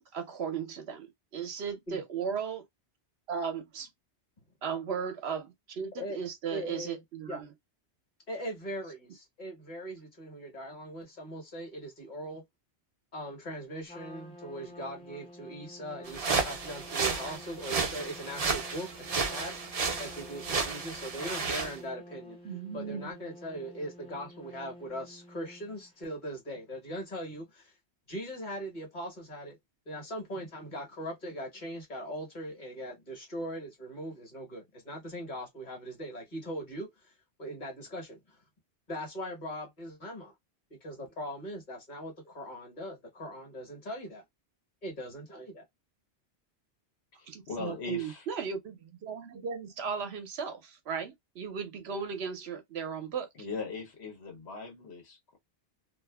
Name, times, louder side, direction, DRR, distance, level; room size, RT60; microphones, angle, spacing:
voice 1, 0.0-2.6 3.3-3.9 4.6-7.5 22.4-23.1 47.3-53.3, right 6 dB, 70° right, 0.9 m, -36 dB
voice 2, 6.5-7.0 7.3-7.4 8.3-12.4 13.1-19.5 20.0-22.4 22.7-27.8 28.1-29.6 29.9-38.4 38.9-40.3 40.7-44.2 44.8-45.6, equal, 45° left, 1.2 m, -40 dB
Trumpet, 13.9-26.0, equal, 5° left, 0.6 m, -50 dB
sound 1, 16.1-21.8, right 4 dB, 40° right, 0.6 m, -32 dB
voice 3, 47.2-48.3 53.3-55.4, left 4 dB, 70° left, 1.1 m, -40 dB
2.6 x 2.5 x 2.2 m
omnidirectional pair, 1.2 m